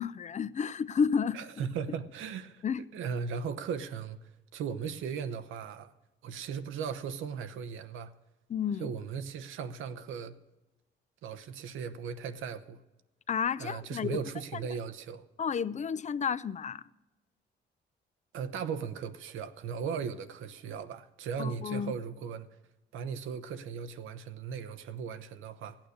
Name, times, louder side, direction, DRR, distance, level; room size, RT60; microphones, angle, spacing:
voice 1, 0.0-1.4 2.6-2.8 8.5-8.9 13.3-14.2 15.4-16.8 21.4-21.9, left 6 dB, 35° left, 0.5 m, -31 dB
voice 2, 1.3-2.6 2.9-4.2 4.5-5.9 6.2-8.1 8.8-10.3 11.2-12.8 13.6-15.2 18.3-22.5 22.9-25.8, right 6 dB, 85° right, 0.9 m, -37 dB
15.5 x 9.0 x 6.5 m
cardioid pair, 90°, 20 cm